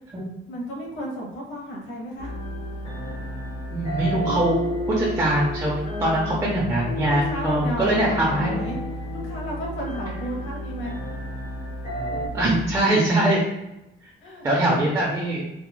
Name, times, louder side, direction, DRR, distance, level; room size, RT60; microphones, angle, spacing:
voice 1, 0.5-2.3 6.5-6.7 7.1-10.9 14.2-14.9, right 1 dB, 80° left, -1 dB, 0.8 m, -33 dB
sound 1, 2.2-12.3, left 1 dB, 35° left, 0.5 m, -33 dB
sound 2, 2.2-12.8, equal, 55° right, 0.7 m, -35 dB
voice 2, 3.7-4.6 4.9-5.7 6.0-8.6 12.3-13.4 14.4-15.4, right 1 dB, 15° right, -5 dB, 0.4 m, -22 dB
3.0 x 2.1 x 2.2 m, 0.89 s
cardioid pair, 175°, 19 cm